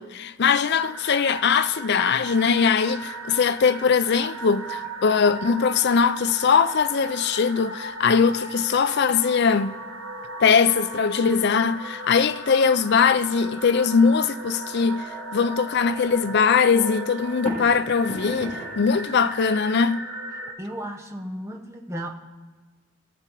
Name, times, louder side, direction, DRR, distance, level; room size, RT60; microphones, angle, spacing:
voice 1, 0.0-9.7 10.4-15.1 15.3-20.0, left 6 dB, 50° left, 0.4 m, -21 dB
sound 1, 0.7-20.5, right 1 dB, 55° right, 1.2 m, -37 dB
sound 2, 1.4-19.4, right 1 dB, 10° left, 4.4 m, -47 dB
voice 2, 20.6-22.1, right 1 dB, 15° right, 0.8 m, -34 dB
18.0 x 6.9 x 4.5 m
head